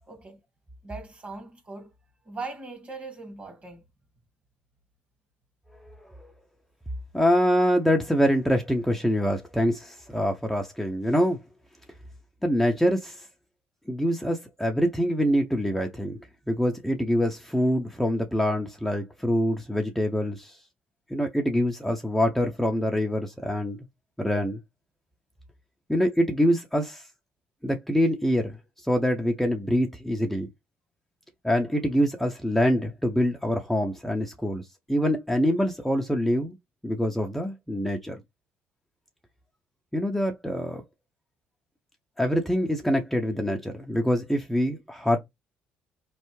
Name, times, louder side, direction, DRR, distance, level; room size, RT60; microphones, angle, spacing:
voice 1, 0.1-0.4 0.8-1.9 2.3-3.8, right 3 dB, 35° right, 1.8 m, -40 dB
voice 2, 7.1-11.4 12.4-13.3 13.9-16.2 16.5-20.6 21.1-23.8 24.2-24.6 25.9-27.1 27.6-30.5 31.4-36.5 36.8-38.2 39.9-40.8 42.2-45.2, equal, 5° left, 0.7 m, -25 dB
3.9 x 3.3 x 3.1 m
supercardioid pair, 90°, 4 cm